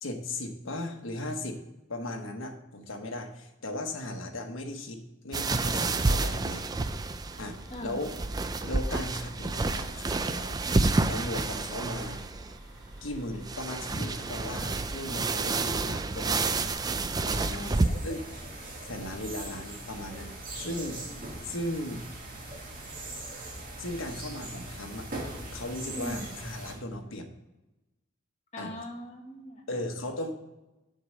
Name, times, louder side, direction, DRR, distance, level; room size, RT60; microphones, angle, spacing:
voice 1, 0.0-1.6 1.9-6.7 7.4-8.1 8.6-10.6 11.0-12.2 13.0-16.7 17.2-17.7 18.0-18.2 18.8-21.0 21.4-22.0 23.6-25.1 25.5-27.3 28.6-28.7 29.7-30.3, left 1 dB, 80° left, 4 dB, 1.2 m, -37 dB
sound 1, 5.3-17.9, right 3 dB, 20° right, 0.3 m, -29 dB
sound 2, 7.2-16.7, equal, 70° right, 2.9 m, -53 dB
voice 2, 7.7-8.0 17.6-18.0 25.9-26.3 28.5-29.8, equal, 35° left, 1 dB, 1.5 m, -40 dB
sound 3, 17.2-26.7, right 2 dB, 45° right, 2.0 m, -41 dB
7.8 x 4.7 x 6.5 m, 1.0 s
head